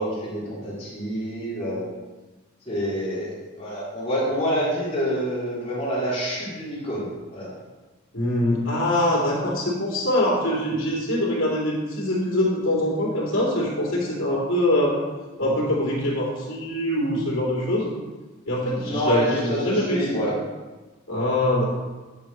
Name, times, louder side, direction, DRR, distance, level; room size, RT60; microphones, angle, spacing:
voice 1, 0.0-1.9 2.6-7.5 18.8-20.3, equal, 30° left, -8 dB, 3.3 m, -27 dB
voice 2, 8.1-15.0 15.4-17.9 18.5-20.2 21.1-21.7, left 1 dB, 85° left, -4 dB, 3.2 m, -23 dB
9.7 x 5.5 x 4.8 m, 1.2 s
head